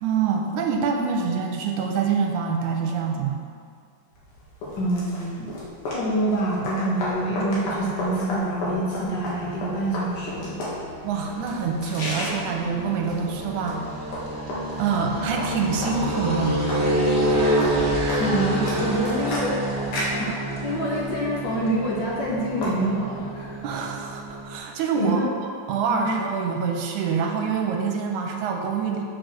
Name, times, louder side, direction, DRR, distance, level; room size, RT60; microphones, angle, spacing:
voice 1, 0.0-3.4 11.0-14.1 14.8-16.7 23.6-25.3 25.7-29.0, right 5 dB, 85° right, 2 dB, 2.1 m, -26 dB
sound 1, 4.1-22.7, left 1 dB, 85° left, 3.3 m, -34 dB
voice 2, 4.8-5.5 5.9-10.6 18.2-19.6 20.1-23.6 24.9-25.3 25.9-26.2, right 1 dB, 65° left, -3 dB, 1.1 m, -26 dB
sound 2, 9.0-24.6, right 1 dB, 30° right, 1.4 m, -28 dB
6.3 x 6.3 x 6.4 m, 2.2 s
omnidirectional pair, 3.5 m